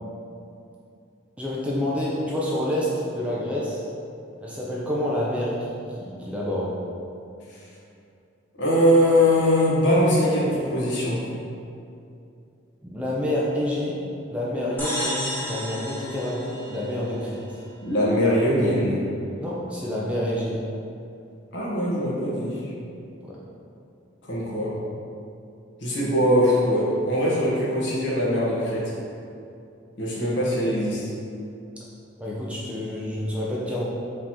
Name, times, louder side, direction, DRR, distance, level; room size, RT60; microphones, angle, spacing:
voice 1, 1.4-3.8 4.4-6.7 12.8-13.9 14.3-17.6 19.4-20.6 23.2-23.3 32.2-33.9, left 1 dB, 5° right, -6 dB, 0.4 m, -28 dB
voice 2, 8.6-11.3 17.8-19.0 21.5-22.6 24.3-24.8 25.8-28.9 30.0-31.1, equal, 60° left, -6 dB, 1.0 m, -22 dB
sound 1, 14.8-17.4, equal, 10° left, 0.9 m, -32 dB
5.0 x 2.9 x 3.5 m, 2.6 s
head